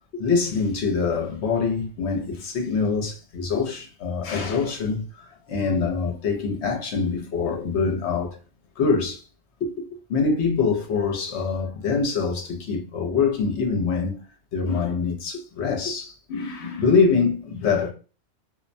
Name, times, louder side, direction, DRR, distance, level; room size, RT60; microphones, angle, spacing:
voice 1, 0.1-8.4 8.8-9.2 9.6-14.2 14.5-17.9, left 5 dB, 65° left, 0.9 m, -24 dB
2.3 x 2.1 x 2.5 m
omnidirectional pair, 1.3 m